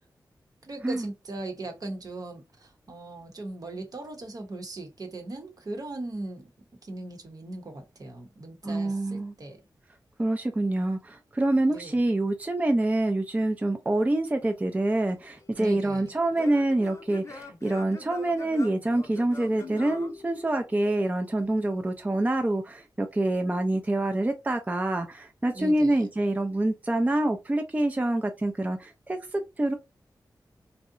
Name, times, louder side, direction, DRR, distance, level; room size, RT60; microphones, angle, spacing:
voice 1, 0.6-6.5 6.8-9.6 11.7-12.0 15.6-16.1 25.5-26.1, right 2 dB, 55° right, 0.8 m, -39 dB
voice 2, 8.6-9.3 10.2-29.7, right 1 dB, 20° right, 0.4 m, -26 dB
Singing / Plucked string instrument, 15.1-21.0, left 3 dB, 40° left, 0.5 m, -45 dB
2.7 x 2.0 x 2.5 m
cardioid pair, 60°, 8 cm